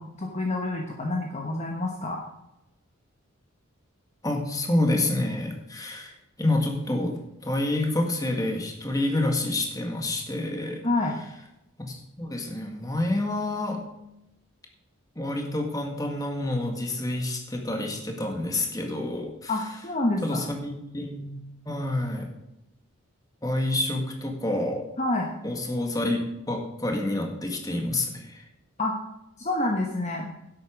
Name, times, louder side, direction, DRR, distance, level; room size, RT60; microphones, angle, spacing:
voice 1, 0.0-2.2 10.8-11.2 19.5-20.4 25.0-25.3 28.8-29.0 29.4-30.3, left 2 dB, 30° left, 1 dB, 1.1 m, -28 dB
voice 2, 4.2-6.1 6.4-7.2 7.4-10.8 11.8-13.8 15.2-19.5 20.2-22.3 23.4-24.8 25.4-28.4, left 1 dB, 15° left, 2 dB, 1.7 m, -28 dB
11.0 x 8.2 x 5.1 m, 0.87 s
head